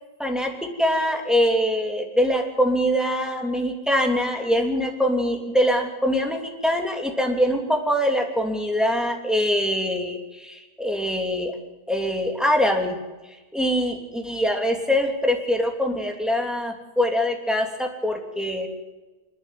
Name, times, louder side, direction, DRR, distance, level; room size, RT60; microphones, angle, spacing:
voice 1, 0.2-0.5 0.8-11.5 11.9-13.0 13.5-18.7, equal, ahead, 2 dB, 3.0 m, -23 dB
28.0 x 10.0 x 9.3 m, 1.2 s
omnidirectional pair, 1.6 m